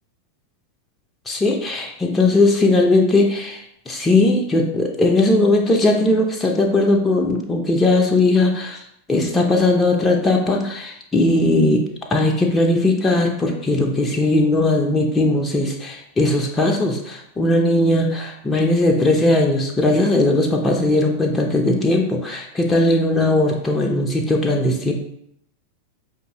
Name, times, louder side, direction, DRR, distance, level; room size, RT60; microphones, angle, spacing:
voice 1, 1.3-11.8 12.1-24.9, left 2 dB, 15° left, 1 dB, 0.5 m, -18 dB
5.1 x 2.6 x 2.9 m, 0.75 s
figure-of-eight pair, 90°, 0 cm